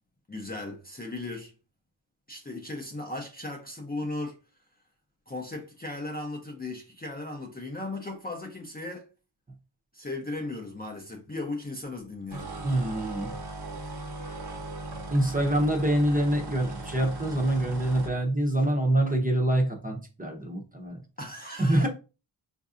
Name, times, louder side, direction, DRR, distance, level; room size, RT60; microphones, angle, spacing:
voice 1, 0.3-1.5 2.3-4.4 5.3-9.1 9.9-12.5 21.2-21.9, left 2 dB, 20° left, 0.6 m, -36 dB
sound 1, 12.3-18.2, right 2 dB, 50° right, 1.0 m, -38 dB
voice 2, 12.6-13.3 15.1-21.0 21.6-21.9, right 1 dB, 15° right, 0.8 m, -25 dB
4.5 x 2.6 x 2.4 m
wide cardioid pair, 75°, 49 cm